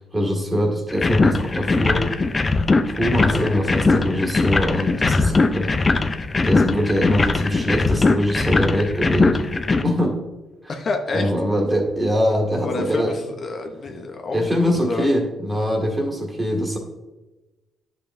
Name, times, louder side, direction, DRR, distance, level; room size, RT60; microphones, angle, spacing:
voice 1, 0.0-2.1 2.9-5.7 6.4-9.4 9.8-10.2 11.1-13.1 14.3-16.8, equal, 15° right, 1 dB, 1.9 m, -23 dB
sound 1, 0.9-9.8, left 3 dB, 30° left, 0.5 m, -20 dB
voice 2, 3.1-3.6 4.7-5.2 10.7-11.3 12.6-15.1, left 3 dB, 45° left, 4 dB, 0.8 m, -29 dB
10.5 x 5.6 x 2.6 m, 1.1 s
cardioid pair, 90°, 0 cm